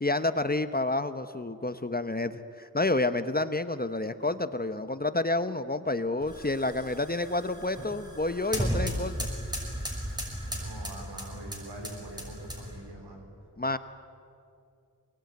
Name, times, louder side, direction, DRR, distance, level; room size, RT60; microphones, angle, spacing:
voice 1, 0.0-9.2 13.6-13.8, left 2 dB, 25° left, 11 dB, 1.0 m, -29 dB
sound 1, 6.2-12.9, equal, 10° right, 6.3 m, -35 dB
voice 2, 10.5-13.3, right 1 dB, 80° right, 3 dB, 4.4 m, -43 dB
24.0 x 20.0 x 9.5 m, 2.5 s
cardioid pair, 55°, 39 cm